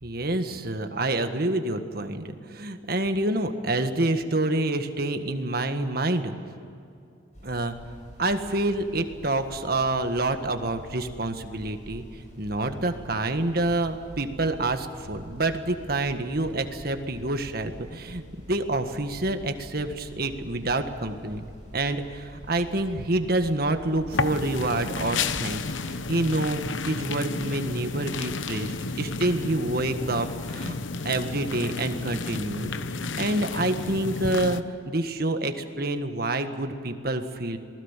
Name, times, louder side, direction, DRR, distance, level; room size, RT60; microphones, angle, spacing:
voice 1, 0.0-6.3 7.4-7.8 8.2-21.5 21.7-30.8 31.1-37.6, right 2 dB, 50° right, 7 dB, 1.7 m, -27 dB
sound 1, 7.3-26.3, equal, 40° left, 7.8 m, -47 dB
sound 2, 24.1-34.6, left 4 dB, 80° left, 1.0 m, -32 dB
27.0 x 20.0 x 7.4 m, 2.6 s
head